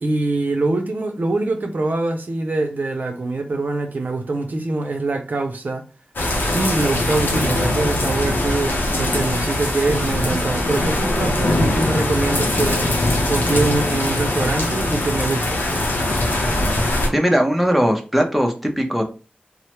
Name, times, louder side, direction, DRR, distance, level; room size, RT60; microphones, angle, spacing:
voice 1, 0.0-5.8 6.5-13.0 13.3-15.6, right 2 dB, 65° right, 0.5 m, -24 dB
sound 1, 6.2-17.1, left 1 dB, 90° left, 0.6 m, -21 dB
voice 2, 17.1-19.0, equal, ahead, 0.6 m, -19 dB
3.1 x 2.0 x 2.9 m
wide cardioid pair, 55°, 3 cm